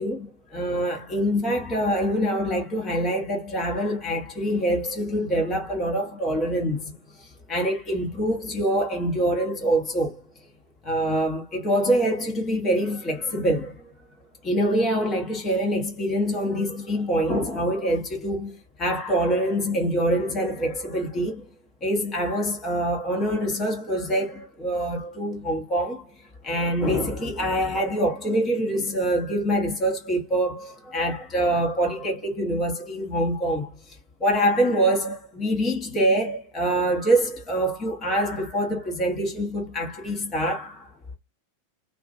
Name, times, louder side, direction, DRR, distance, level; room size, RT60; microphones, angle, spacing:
voice 1, 0.0-10.2 10.8-13.9 14.4-21.5 21.8-40.9, right 1 dB, 25° left, 0.9 m, -25 dB
2.4 x 2.2 x 2.6 m
figure-of-eight pair, 90°, 0 cm